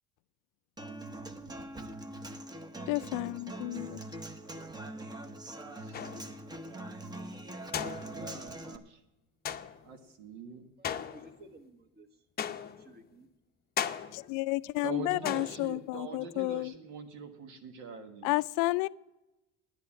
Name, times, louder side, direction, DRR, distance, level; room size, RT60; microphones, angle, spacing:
Human voice / Acoustic guitar, 0.8-8.8, right 1 dB, 10° right, 0.8 m, -43 dB
voice 1, 2.9-4.0 14.1-16.7 18.2-18.9, left 22 dB, 70° left, 0.5 m, -31 dB
voice 2, 5.6-6.0 8.1-9.0 9.8-10.7 14.8-18.3, right 5 dB, 70° right, 1.5 m, -43 dB
sound 1, 5.9-6.4 7.7-8.5 9.4-10.0 10.8-11.6 12.4-13.0 13.8-14.4 15.2-15.9, left 9 dB, 30° left, 0.7 m, -37 dB
voice 3, 10.8-12.1 12.8-13.3, right 2 dB, 30° right, 1.4 m, -55 dB
10.5 x 8.3 x 8.5 m
cardioid pair, 130°, 33 cm